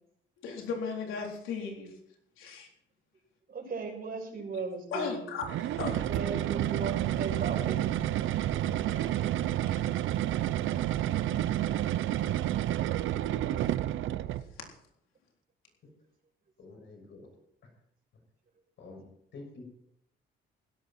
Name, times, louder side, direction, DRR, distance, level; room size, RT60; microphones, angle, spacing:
voice 1, 0.4-1.9 2.4-2.7 4.9-5.4 5.8-6.0 8.9-9.3 9.7-9.9, left 5 dB, 90° left, 1 dB, 3.9 m, -36 dB
voice 2, 3.5-5.2 6.1-7.8, right 4 dB, 50° right, 2 dB, 6.0 m, -37 dB
sound 1, 5.4-14.5, right 12 dB, 80° right, 0.8 m, -30 dB
voice 3, 16.6-17.3 18.8-19.0 19.3-19.7, left 3 dB, 70° left, 3 dB, 6.5 m, -47 dB
16.5 x 12.5 x 4.5 m, 0.73 s
cardioid pair, 90°, 20 cm